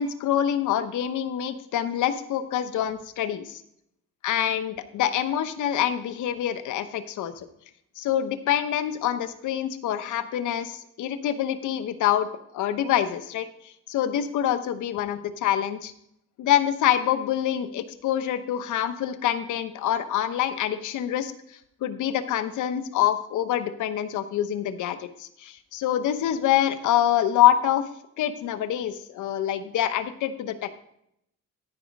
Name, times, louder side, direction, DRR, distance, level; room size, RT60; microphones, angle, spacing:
voice 1, 0.0-3.6 4.2-7.5 8.0-12.3 12.5-15.9 16.4-21.3 21.8-27.9 28.2-30.8, left 11 dB, 80° left, 11 dB, 0.9 m, -26 dB
14.0 x 5.0 x 5.3 m, 0.75 s
cardioid pair, 90°, 30 cm